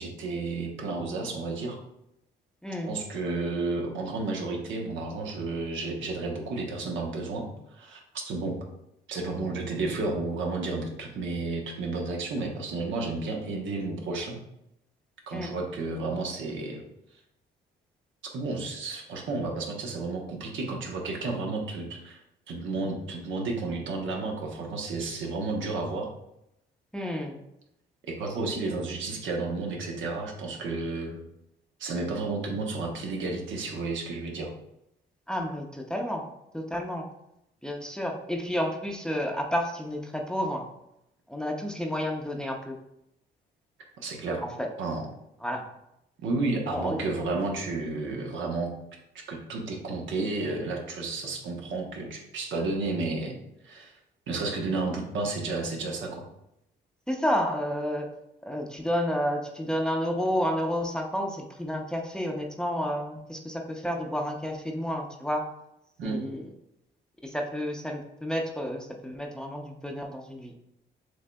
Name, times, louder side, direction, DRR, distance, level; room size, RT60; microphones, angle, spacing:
voice 1, 0.0-1.8 2.9-8.6 9.1-14.4 15.3-16.8 18.2-22.2 22.5-26.1 28.1-31.2 31.8-34.5 44.0-44.4 44.8-45.1 46.2-48.7 49.3-53.4 53.6-53.9 54.3-56.2 66.0-66.2, right 3 dB, 75° right, 1 dB, 1.0 m, -32 dB
voice 2, 26.9-27.4 35.3-36.3 36.5-37.1 37.6-40.7 41.3-42.7 44.4-44.5 45.4-45.6 46.7-47.0 57.1-58.1 58.4-65.5 66.0-66.4 67.2-70.5, equal, 5° left, 1 dB, 0.7 m, -30 dB
6.3 x 3.2 x 2.3 m, 0.81 s
cardioid pair, 90°, 20 cm